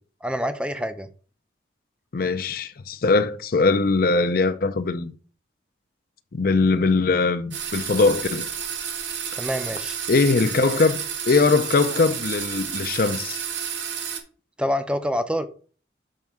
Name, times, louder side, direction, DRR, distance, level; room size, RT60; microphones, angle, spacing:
voice 1, 0.2-1.1 9.3-10.0 14.6-15.5, equal, 5° right, 0.5 m, -26 dB
voice 2, 2.1-5.1 6.3-8.5 10.1-13.4, left 3 dB, 50° left, 0.5 m, -21 dB
sound 1, 7.5-14.2, right 8 dB, 70° right, 1.4 m, -31 dB
7.5 x 5.4 x 3.6 m
head